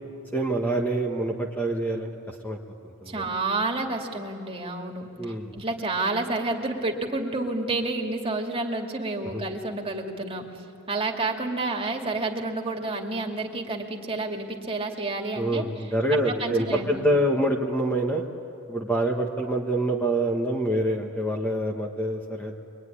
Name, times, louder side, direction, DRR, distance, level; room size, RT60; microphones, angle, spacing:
voice 1, 0.3-2.6 3.0-3.2 5.2-5.5 9.2-9.4 15.3-18.2 18.7-22.6, right 1 dB, 10° left, 1 dB, 1.5 m, -26 dB
voice 2, 3.1-5.1 5.5-10.4 10.9-15.6 16.1-17.1, right 2 dB, 25° right, 1 dB, 2.5 m, -29 dB
25.5 x 23.5 x 10.0 m, 2.6 s
head